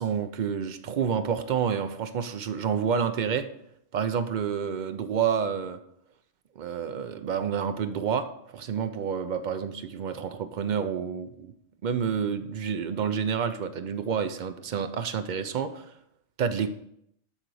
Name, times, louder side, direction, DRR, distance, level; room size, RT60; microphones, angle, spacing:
voice 1, 0.0-3.5 3.9-5.8 6.6-11.5 11.8-15.9 16.4-16.7, right 7 dB, 60° right, 9 dB, 0.5 m, -29 dB
11.5 x 3.9 x 4.8 m, 0.74 s
omnidirectional pair, 1.3 m